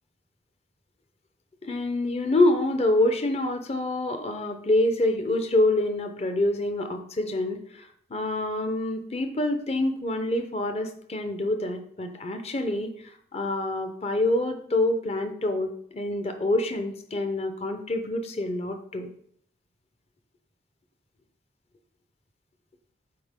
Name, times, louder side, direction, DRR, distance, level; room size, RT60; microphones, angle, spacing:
voice 1, 1.6-19.1, left 1 dB, 35° left, 7 dB, 0.7 m, -26 dB
7.7 x 4.2 x 3.7 m, 0.65 s
head